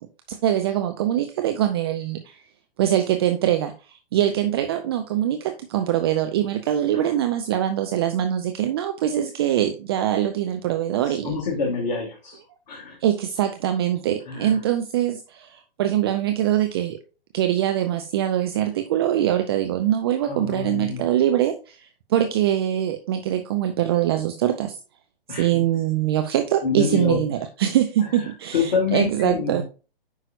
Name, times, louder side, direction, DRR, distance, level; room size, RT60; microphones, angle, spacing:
voice 1, 0.3-2.4 2.8-11.4 13.0-17.0 17.3-24.8 25.4-29.6, right 11 dB, 25° right, 7 dB, 0.5 m, -23 dB
voice 2, 11.0-12.4 12.7-13.0 14.3-14.6 20.2-21.1 25.3-25.6 26.6-27.2 28.5-29.6, left 5 dB, 45° left, -1 dB, 2.0 m, -26 dB
9.3 x 5.7 x 2.6 m, 0.34 s
figure-of-eight pair, 120°, 30 cm